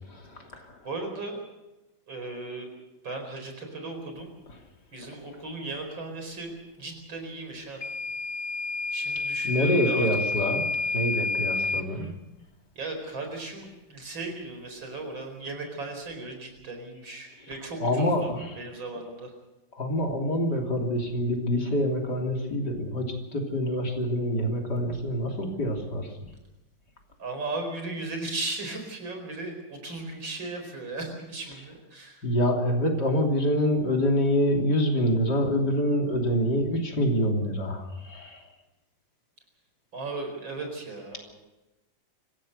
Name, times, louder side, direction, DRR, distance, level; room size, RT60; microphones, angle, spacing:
voice 1, 0.1-0.8 9.4-10.7 10.9-12.1 17.8-18.6 19.7-26.1 32.2-38.4, equal, 55° left, 1 dB, 3.8 m, -26 dB
voice 2, 0.8-1.4 2.1-2.7 3.0-4.3 4.9-7.8 8.9-10.1 11.6-11.8 12.8-19.3 27.2-32.2 39.9-41.3, right 2 dB, 75° right, 4 dB, 5.5 m, -36 dB
Microwave oven / Alarm, 7.8-11.9, left 3 dB, 30° left, 0.4 m, -29 dB
26.0 x 16.0 x 6.7 m, 1.0 s
omnidirectional pair, 2.1 m